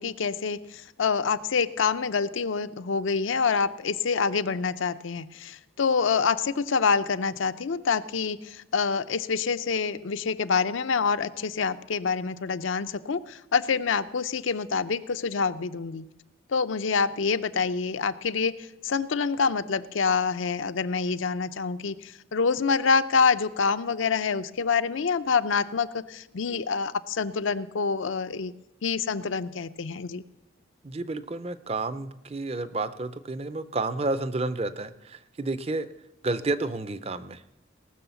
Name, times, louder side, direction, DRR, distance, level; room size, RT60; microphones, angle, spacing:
voice 1, 0.0-16.0 16.5-28.5 28.8-30.2, left 5 dB, 80° left, 11 dB, 0.5 m, -26 dB
voice 2, 30.8-35.9 36.2-37.4, right 2 dB, 30° right, 14 dB, 0.5 m, -30 dB
18.5 x 6.3 x 7.0 m, 0.89 s
head